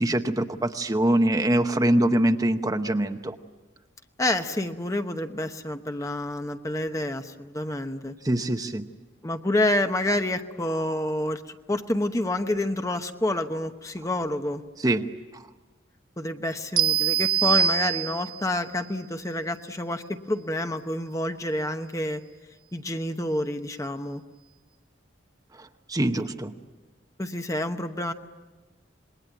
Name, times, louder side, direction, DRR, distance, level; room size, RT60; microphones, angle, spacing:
voice 1, 0.0-3.3 8.2-8.8 14.8-15.0 25.9-26.5, right 1 dB, 20° right, 7 dB, 0.9 m, -23 dB
voice 2, 4.2-8.1 9.2-14.6 16.2-22.2 22.7-24.2 27.2-28.1, left 1 dB, 15° left, 7 dB, 0.9 m, -28 dB
sound 1, 16.8-18.5, right 8 dB, 45° right, 1.8 m, -23 dB
27.0 x 21.5 x 9.3 m, 1.2 s
head